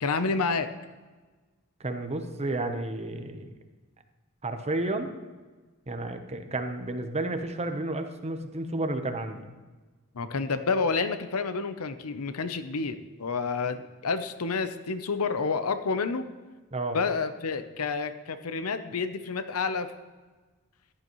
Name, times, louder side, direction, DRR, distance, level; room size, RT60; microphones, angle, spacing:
voice 1, 0.0-0.7 10.1-16.3 16.9-19.9, left 4 dB, 80° left, 10 dB, 0.7 m, -29 dB
voice 2, 1.8-3.5 4.4-5.1 5.9-9.5 16.7-17.0, right 2 dB, 30° right, 7 dB, 0.8 m, -31 dB
14.5 x 11.0 x 3.1 m, 1.3 s
head